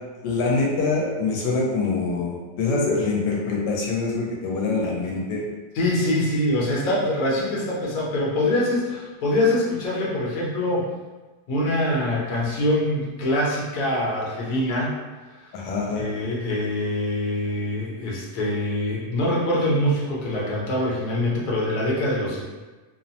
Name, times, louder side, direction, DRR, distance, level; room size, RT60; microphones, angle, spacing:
voice 1, 0.2-5.5 15.5-16.1, left 3 dB, 85° left, -2 dB, 1.2 m, -24 dB
voice 2, 5.7-10.9 11.5-14.9 15.9-22.4, left 1 dB, 65° left, -5 dB, 1.1 m, -24 dB
3.0 x 2.0 x 2.7 m, 1.2 s
omnidirectional pair, 1.8 m